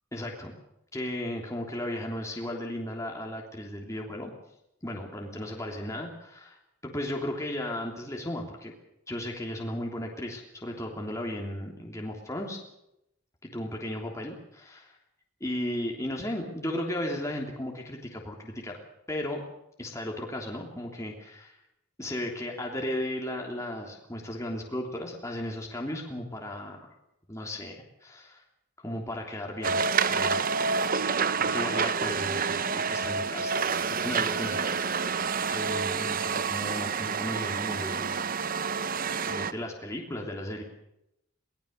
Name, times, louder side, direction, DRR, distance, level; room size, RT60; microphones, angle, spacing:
voice 1, 0.1-0.5 0.9-4.3 4.8-6.6 6.8-8.7 9.1-12.6 13.4-15.0 15.4-18.8 19.1-19.4 19.8-21.6 22.0-26.8 27.3-27.8 28.0-28.4 28.8-29.8 30.1-30.5 30.9-31.0 31.4-33.5 34.0-34.6 35.5-38.9 39.3-40.6, left 1 dB, 15° left, 0 dB, 3.2 m, -35 dB
sound 1, 29.6-39.5, right 5 dB, 45° right, 0.9 m, -28 dB
23.0 x 19.5 x 6.7 m, 0.83 s
head